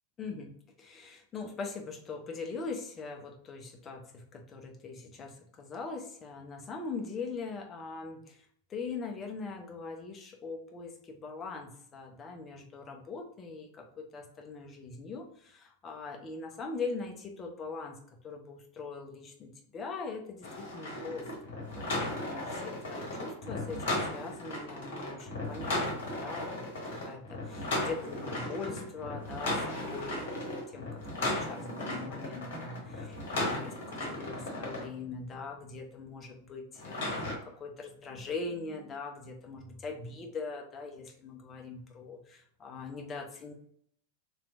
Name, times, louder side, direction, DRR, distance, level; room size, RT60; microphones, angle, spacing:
voice 1, 0.2-8.4 8.7-43.5, left 4 dB, 25° left, 2 dB, 0.7 m, -42 dB
sound 1, 20.4-34.8 36.8-37.3, left 1 dB, 55° left, 1.1 m, -36 dB
3.0 x 3.0 x 2.5 m, 0.65 s
figure-of-eight pair, 90°, 0 cm